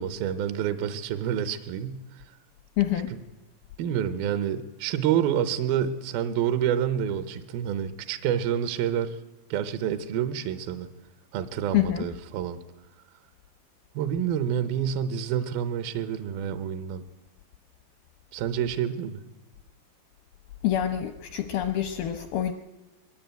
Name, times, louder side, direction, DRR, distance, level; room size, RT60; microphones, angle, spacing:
voice 1, 0.0-2.3 3.1-3.2 3.8-9.2 9.5-10.9 11.3-12.6 14.0-17.0 18.3-19.2, right 9 dB, 80° right, 10 dB, 2.2 m, -28 dB
voice 2, 2.8-3.1 11.7-12.1 20.6-22.5, left 12 dB, 85° left, 7 dB, 2.1 m, -26 dB
22.5 x 12.5 x 9.2 m, 1.1 s
omnidirectional pair, 5.2 m